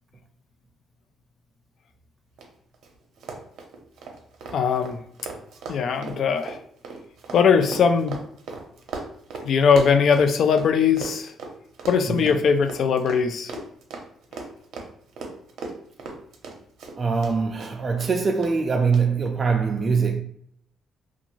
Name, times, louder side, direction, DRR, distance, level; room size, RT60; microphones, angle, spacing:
Run, 2.4-2.5 2.7-2.9 3.2-10.7 11.0-17.3 17.6-18.1 18.4-18.5 18.9-19.0, right 4 dB, 75° right, 0.6 m, -37 dB
voice 1, 4.5-5.0 5.7-6.6 7.3-8.2 9.4-11.3 11.9-13.6 14.4-14.5, left 6 dB, 60° left, 0.3 m, -20 dB
voice 2, 12.1-12.4 17.0-20.2, right 5 dB, 35° right, 0.3 m, -23 dB
2.5 x 2.3 x 3.0 m
cardioid pair, 110°, 0 cm